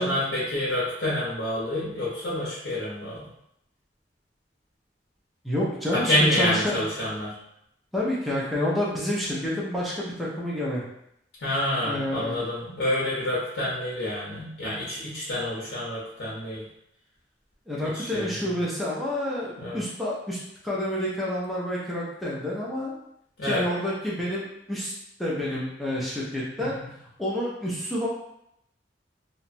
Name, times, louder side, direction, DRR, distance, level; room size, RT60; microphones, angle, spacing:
voice 1, 0.0-3.2 5.9-7.3 11.4-16.6 17.8-18.3 19.6-19.8 23.4-23.6 26.6-26.9, left 1 dB, 85° left, -6 dB, 0.7 m, -28 dB
voice 2, 5.4-6.8 7.9-10.8 11.8-12.3 17.7-22.9 23.4-24.9 25.2-28.1, left 1 dB, ahead, -6 dB, 0.4 m, -29 dB
2.8 x 2.1 x 2.5 m, 0.78 s
head